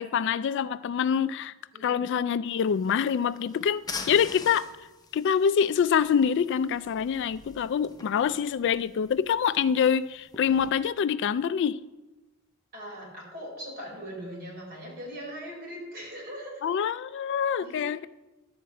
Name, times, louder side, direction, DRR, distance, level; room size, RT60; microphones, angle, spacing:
voice 1, 0.0-1.5 1.8-4.7 5.1-11.8 16.6-18.1, left 7 dB, 60° left, 0.3 m, -25 dB
sound 1, 2.5-10.7, left 4 dB, 20° left, 0.7 m, -45 dB
voice 2, 12.7-16.6 17.6-17.8, equal, 45° right, 4.3 m, -40 dB
12.0 x 4.4 x 7.6 m
head